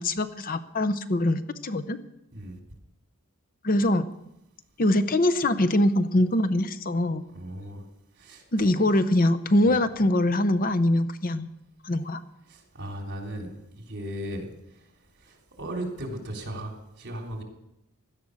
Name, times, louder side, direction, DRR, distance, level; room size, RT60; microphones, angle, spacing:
voice 1, 0.0-2.0 3.6-4.1 4.8-7.2 8.5-11.5 11.8-12.2, left 1 dB, 40° left, 12 dB, 0.7 m, -23 dB
voice 2, 7.3-7.8 8.2-8.8 9.6-9.8 12.5-14.5 15.2-17.4, right 1 dB, 55° right, 2 dB, 3.6 m, -37 dB
16.5 x 12.0 x 6.5 m, 0.86 s
head